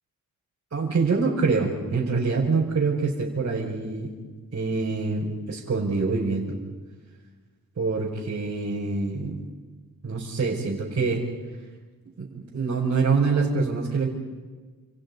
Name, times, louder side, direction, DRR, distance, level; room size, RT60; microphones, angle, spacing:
voice 1, 0.7-4.1 4.5-6.6 7.8-9.4 10.0-11.2 12.2-14.1, right 4 dB, 45° right, -5 dB, 5.4 m, -25 dB
29.0 x 28.0 x 5.5 m, 1.4 s
wide cardioid pair, 125°, 34 cm